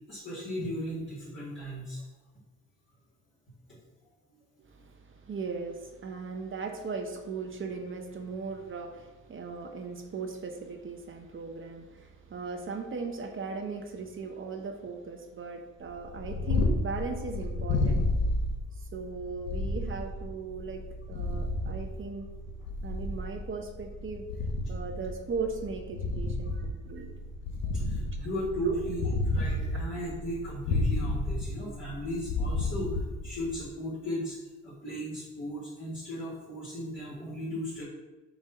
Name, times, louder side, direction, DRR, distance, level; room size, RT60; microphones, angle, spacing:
voice 1, 0.0-2.1 4.3-4.4 26.5-26.6 27.7-34.4 34.6-37.8, equal, 40° left, -9 dB, 2.1 m, -36 dB
voice 2, 4.7-18.0 18.8-20.8 21.1-22.3 22.8-24.3 24.7-27.1 27.6-27.7 28.6-28.7, right 4 dB, 40° right, 4 dB, 0.8 m, -38 dB
Purr, 16.0-33.7, left 2 dB, 75° left, 1.4 m, -31 dB
7.1 x 2.7 x 5.5 m, 1.2 s
cardioid pair, 90°, 30 cm